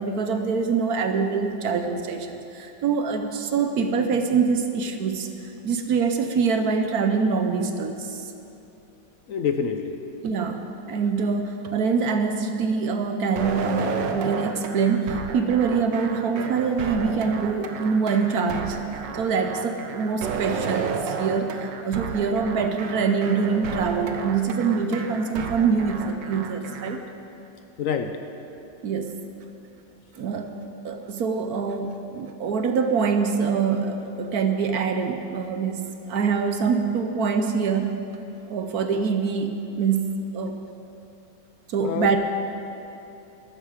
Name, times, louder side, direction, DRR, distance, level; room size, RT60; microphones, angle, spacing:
voice 1, 0.0-5.3 5.6-8.3 10.2-27.0 28.8-29.2 30.1-38.0 38.5-40.6 41.7-42.2, right 5 dB, 65° right, 6 dB, 1.2 m, -25 dB
voice 2, 9.3-10.0 27.8-28.2 41.8-42.2, left 6 dB, 65° left, 7 dB, 0.8 m, -26 dB
sound 1, 13.4-27.0, right 5 dB, 90° right, 1.5 m, -32 dB
14.0 x 12.0 x 5.0 m, 2.8 s
omnidirectional pair, 1.9 m